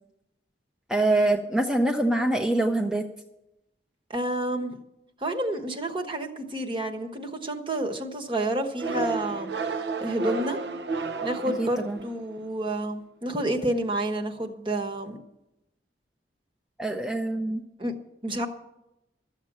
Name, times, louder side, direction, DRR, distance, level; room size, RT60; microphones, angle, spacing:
voice 1, 0.9-3.1 11.6-12.0 16.8-17.6, right 2 dB, 5° right, 2 dB, 0.6 m, -24 dB
voice 2, 4.1-4.8 5.2-9.5 10.0-10.6 11.2-15.2 17.8-17.9 18.2-18.5, right 1 dB, 30° right, 4 dB, 1.2 m, -29 dB
sound 1, 8.8-12.3, right 4 dB, 70° right, 0.8 m, -32 dB
13.0 x 7.4 x 8.6 m, 0.90 s
head